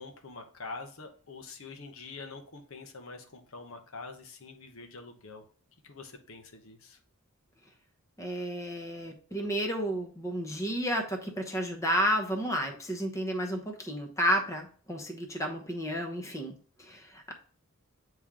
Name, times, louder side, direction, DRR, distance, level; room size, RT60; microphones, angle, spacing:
voice 1, 0.0-5.5 5.8-7.0, left 3 dB, 65° left, 4 dB, 1.0 m, -45 dB
voice 2, 8.2-16.5 16.8-17.3, equal, 15° left, 2 dB, 0.9 m, -31 dB
8.8 x 3.1 x 3.7 m, 0.43 s
head